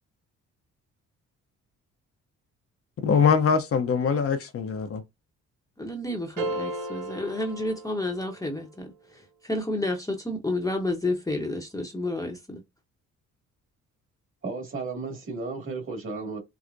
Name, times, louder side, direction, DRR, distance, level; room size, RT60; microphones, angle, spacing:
voice 1, 3.0-5.0, left 6 dB, 50° left, 0.8 m, -23 dB
voice 2, 5.8-12.6, left 2 dB, 10° left, 0.9 m, -30 dB
sound 1, 6.4-8.6, right 2 dB, 90° right, 1.0 m, -34 dB
voice 3, 14.4-16.4, right 4 dB, 45° right, 2.1 m, -34 dB
4.6 x 2.1 x 2.6 m
cardioid pair, 90°, 30 cm